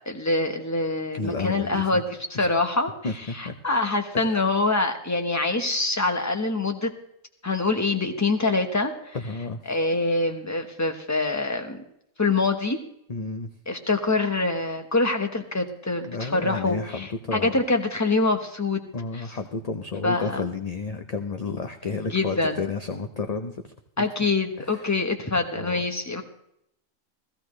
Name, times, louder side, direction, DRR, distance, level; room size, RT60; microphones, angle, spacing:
voice 1, 0.1-2.9 3.4-6.9 7.4-9.2 9.7-11.8 12.2-12.8 13.7-18.8 19.1-19.2 20.0-20.3 22.1-22.6 24.0-26.2, left 3 dB, 15° left, 5 dB, 1.1 m, -25 dB
voice 2, 1.1-2.0 2.3-2.5 3.0-3.5 4.1-4.5 9.1-9.6 13.1-13.5 16.0-17.5 18.9-23.7 24.6-24.9 25.5-25.8, left 4 dB, 35° left, 6 dB, 0.7 m, -31 dB
16.0 x 16.0 x 3.3 m, 0.75 s
omnidirectional pair, 1.4 m